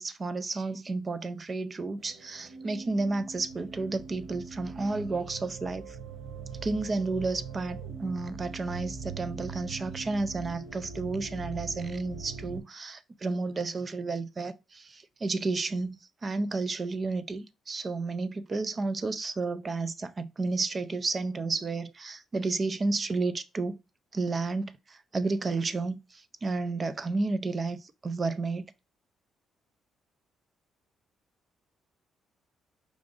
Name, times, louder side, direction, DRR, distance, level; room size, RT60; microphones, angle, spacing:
voice 1, 0.0-6.0 6.6-23.8 24.1-28.6, right 3 dB, 35° right, 0.5 m, -32 dB
sound 1, 2.0-12.6, right 5 dB, 65° right, 2.4 m, -42 dB
4.9 x 2.5 x 3.7 m
cardioid pair, 90°, 0 cm